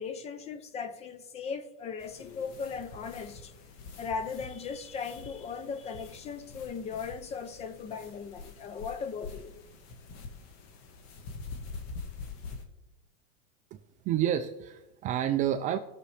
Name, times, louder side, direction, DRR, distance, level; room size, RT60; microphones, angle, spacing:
voice 1, 0.0-3.5 4.0-9.6, left 6 dB, 20° left, 0.6 m, -38 dB
sound 1, 2.0-12.6, left 4 dB, 50° left, 1.5 m, -45 dB
voice 2, 14.0-15.8, right 11 dB, 25° right, 0.4 m, -29 dB
18.5 x 6.6 x 3.3 m
supercardioid pair, 150°, 30 cm